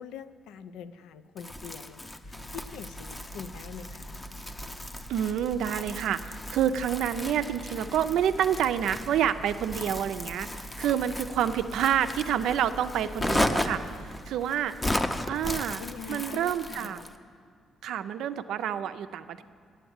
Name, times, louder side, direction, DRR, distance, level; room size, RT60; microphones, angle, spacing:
voice 1, 0.0-4.2 14.2-14.5 15.1-15.2 15.4-17.1, left 6 dB, 90° left, 11 dB, 0.4 m, -44 dB
Crumpling crinkling, 1.4-17.2, left 1 dB, 15° left, 0.6 m, -35 dB
sound 1, 2.2-14.3, right 1 dB, 45° left, 1.0 m, -45 dB
voice 2, 5.1-14.7 15.3-15.8 16.1-17.0 17.8-19.4, right 9 dB, 80° right, 11 dB, 0.4 m, -28 dB
9.0 x 7.8 x 7.9 m, 2.3 s
cardioid pair, 90°, 0 cm